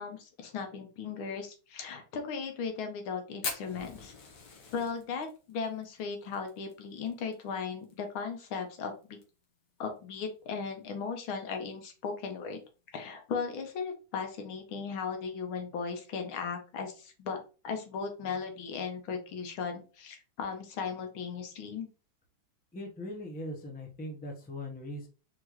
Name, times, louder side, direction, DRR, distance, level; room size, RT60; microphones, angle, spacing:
voice 1, 0.0-4.1 4.7-9.2 9.8-12.6 12.9-17.4 17.6-21.9, left 5 dB, 85° left, 5 dB, 1.8 m, -37 dB
Fire, 3.4-8.2 8.5-8.6 9.0-9.4 10.0-10.1 11.1-11.3, left 4 dB, 60° left, 1.7 m, -41 dB
voice 2, 22.7-25.1, left 1 dB, 10° left, 1 dB, 0.5 m, -40 dB
4.5 x 3.8 x 3.1 m, 0.34 s
omnidirectional pair, 2.2 m